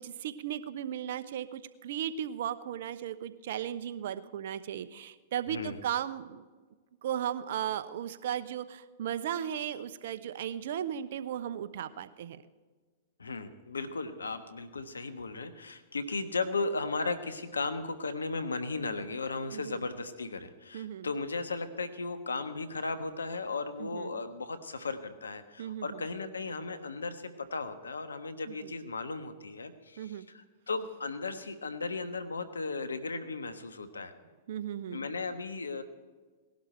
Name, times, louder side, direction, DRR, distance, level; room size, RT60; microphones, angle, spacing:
voice 1, 0.0-6.4 7.0-12.4 19.5-19.8 20.7-21.1 23.8-24.2 25.6-26.0 28.5-28.7 30.0-30.3 34.5-35.0, right 10 dB, 65° right, 12 dB, 0.9 m, -36 dB
voice 2, 5.5-5.8 13.2-34.1 34.9-35.8, left 3 dB, 90° left, 10 dB, 1.2 m, -36 dB
18.5 x 11.5 x 4.5 m, 1.4 s
hypercardioid pair, 110°, 0 cm